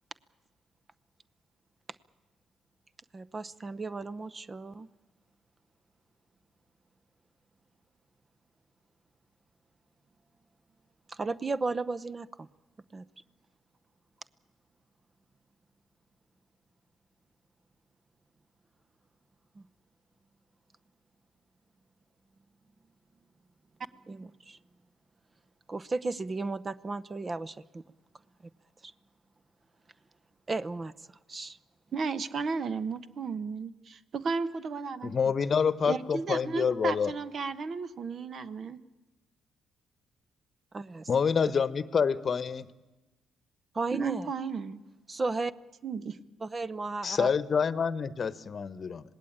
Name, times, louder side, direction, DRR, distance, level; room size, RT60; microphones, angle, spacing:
voice 1, 3.1-4.9 11.1-12.5 12.9-13.0 19.6-19.7 24.1-24.6 25.7-27.8 28.8-28.9 30.5-30.9 31.3-31.6 40.7-41.1 43.7-44.3 45.1-45.5 46.4-47.3, right 3 dB, 30° right, 14 dB, 0.8 m, -34 dB
voice 2, 31.9-35.3 35.9-38.8 43.9-44.8 45.8-46.2, right 5 dB, 55° right, 13 dB, 1.2 m, -34 dB
voice 3, 35.0-37.1 41.1-42.7 47.0-49.0, left 6 dB, 45° left, 16 dB, 1.0 m, -27 dB
26.5 x 18.5 x 8.8 m, 1.1 s
hypercardioid pair, 55°, 0 cm